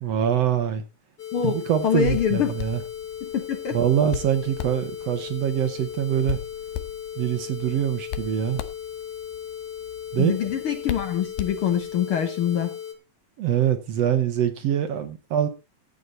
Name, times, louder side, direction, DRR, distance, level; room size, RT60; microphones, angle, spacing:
voice 1, 0.0-0.8 1.4-2.8 3.7-6.4 7.2-8.6 10.1-10.5 13.4-15.5, right 10 dB, 65° right, 1.7 m, -24 dB
sound 1, 1.2-12.9, left 9 dB, 45° left, 2.7 m, -37 dB
voice 2, 1.3-2.5 3.2-3.8 10.2-12.7, left 8 dB, 70° left, 1.3 m, -25 dB
Hands, 1.8-12.1, left 11 dB, 90° left, 2.6 m, -38 dB
14.5 x 8.5 x 4.0 m
omnidirectional pair, 3.9 m